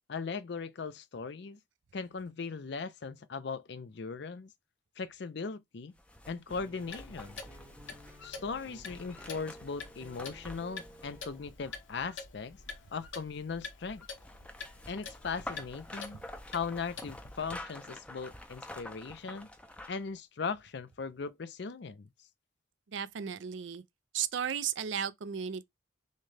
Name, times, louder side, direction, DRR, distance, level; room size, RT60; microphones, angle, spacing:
voice 1, 0.1-1.6 1.9-4.5 5.0-5.9 6.3-7.4 8.2-12.6 12.9-14.0 14.9-16.2 16.5-19.5 19.9-22.1, left 5 dB, 55° left, 0.5 m, -38 dB
sound 1, 6.0-12.1 13.8-20.1 20.5-20.6, left 1 dB, 5° left, 0.5 m, -48 dB
sound 2, 6.5-11.5, right 1 dB, 10° right, 0.9 m, -55 dB
Clock, 6.9-17.4, left 5 dB, 75° left, 1.1 m, -48 dB
voice 2, 22.9-23.8 24.1-25.6, right 8 dB, 70° right, 0.5 m, -34 dB
6.4 x 2.3 x 3.2 m
head